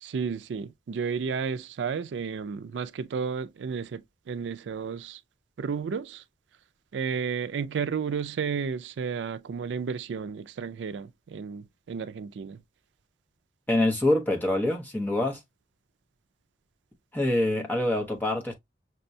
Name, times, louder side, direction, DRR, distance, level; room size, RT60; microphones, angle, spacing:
voice 1, 0.0-4.0 4.3-5.2 5.6-6.2 6.9-12.6, right 6 dB, 85° right, 0.4 m, -32 dB
voice 2, 13.7-15.4 17.1-18.5, left 1 dB, 10° left, 0.9 m, -25 dB
5.9 x 2.2 x 2.6 m
head